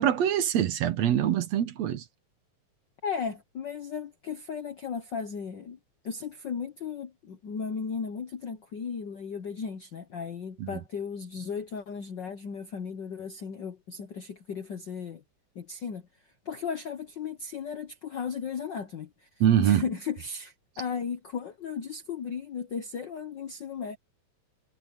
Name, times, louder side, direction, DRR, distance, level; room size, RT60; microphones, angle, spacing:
voice 1, 0.0-2.0 10.6-10.7 19.4-19.9, right 10 dB, 65° right, 2.1 m, -24 dB
voice 2, 3.0-5.8 6.0-15.2 15.5-16.1 16.4-19.3 19.6-24.0, left 6 dB, 65° left, 1.1 m, -35 dB
omnidirectional pair, 3.4 m